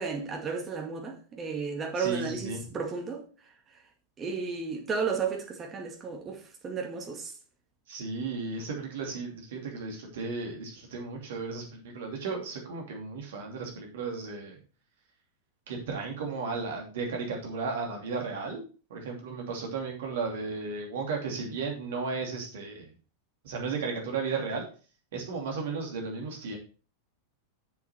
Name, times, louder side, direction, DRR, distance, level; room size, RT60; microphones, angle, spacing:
voice 1, 0.0-3.2 4.2-7.3, right 5 dB, 25° right, 2.3 m, -33 dB
voice 2, 2.0-2.6 7.9-14.6 15.7-18.6 18.9-22.9 23.4-24.6 25.1-26.6, right 4 dB, 55° right, 2.8 m, -34 dB
7.8 x 7.1 x 4.4 m
figure-of-eight pair, 90°, 0 cm